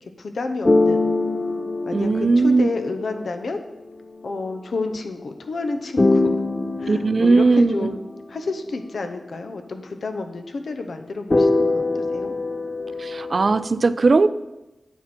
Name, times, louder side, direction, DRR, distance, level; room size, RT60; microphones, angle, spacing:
voice 1, 0.2-1.1 1.9-3.6 4.2-6.4 6.8-8.0 8.3-11.8 12.1-12.3, left 3 dB, 75° left, 6 dB, 0.8 m, -30 dB
sound 1, 0.6-3.5 6.0-8.2 11.3-13.6, left 2 dB, 35° left, 0.6 m, -23 dB
voice 2, 1.9-2.7 6.9-7.9 13.0-14.3, right 3 dB, 60° right, 14 dB, 0.4 m, -18 dB
9.1 x 6.3 x 4.3 m, 0.98 s
wide cardioid pair, 65°, 0 cm